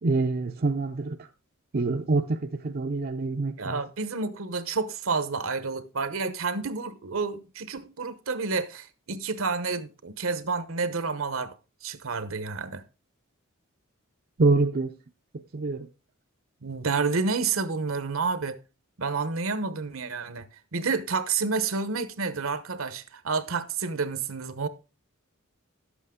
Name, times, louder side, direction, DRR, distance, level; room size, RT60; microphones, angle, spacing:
voice 1, 0.0-1.2 1.7-3.8 14.4-14.9 15.5-15.9, right 3 dB, 45° right, 0.6 m, -25 dB
voice 2, 3.6-11.5 11.8-12.8 16.6-18.6 19.0-20.5 20.7-24.7, right 4 dB, 70° right, 0.9 m, -29 dB
11.5 x 8.2 x 3.7 m
head